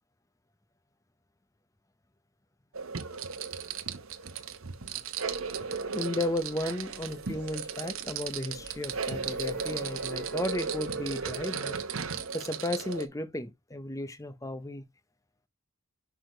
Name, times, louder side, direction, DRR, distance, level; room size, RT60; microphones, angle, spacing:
sound 1, 2.7-13.1, right 5 dB, 65° right, 0.9 m, -35 dB
sound 2, 5.2-11.4, right 3 dB, 45° right, 1.2 m, -52 dB
voice 1, 5.9-11.8 12.3-14.8, left 1 dB, 15° left, 0.7 m, -34 dB
6.3 x 4.6 x 3.8 m
head